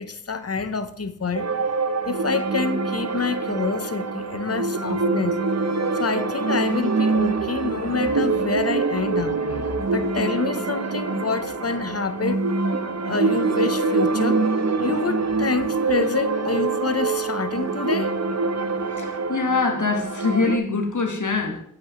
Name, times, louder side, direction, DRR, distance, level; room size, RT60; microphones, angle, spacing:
voice 1, 0.0-1.5 2.0-5.4 5.9-12.4 13.0-14.4 14.8-18.1, left 4 dB, 50° left, 0.7 m, -27 dB
sound 1, 1.3-20.6, right 3 dB, 55° right, 0.6 m, -25 dB
voice 2, 19.0-21.6, left 4 dB, 70° left, 1.4 m, -24 dB
8.2 x 8.1 x 2.9 m
wide cardioid pair, 50°, 32 cm